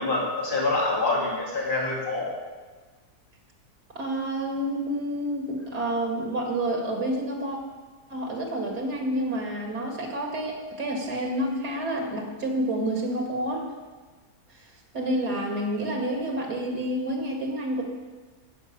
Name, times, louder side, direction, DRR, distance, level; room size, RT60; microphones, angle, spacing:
voice 1, 0.0-2.3, left 2 dB, 35° left, -4 dB, 2.4 m, -26 dB
voice 2, 3.9-7.6 8.1-13.7 14.9-17.8, right 1 dB, 85° right, 1 dB, 2.6 m, -29 dB
13.5 x 5.3 x 8.3 m, 1.4 s
omnidirectional pair, 1.7 m